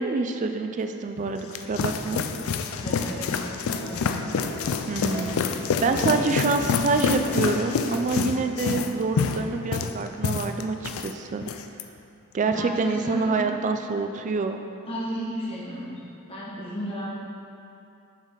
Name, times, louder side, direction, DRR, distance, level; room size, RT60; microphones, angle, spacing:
voice 1, 0.0-2.2 4.9-5.4 5.8-11.4 12.3-14.6, right 3 dB, 35° right, 6 dB, 0.3 m, -26 dB
sound 1, 1.2-11.1 11.4-11.8, left 5 dB, 65° left, 0.4 m, -27 dB
voice 2, 2.7-3.4 3.8-4.2 5.9-6.3 12.4-13.5 14.9-17.1, equal, 25° left, -7 dB, 1.6 m, -34 dB
sound 2, 3.7-3.9 4.4-4.6 5.1-5.3 5.9-6.0 6.6-6.7 7.2-7.4 7.9-8.1 8.6-8.8 9.3-9.4, left 1 dB, 85° left, 1.3 m, -38 dB
6.9 x 6.4 x 3.8 m, 2.6 s
head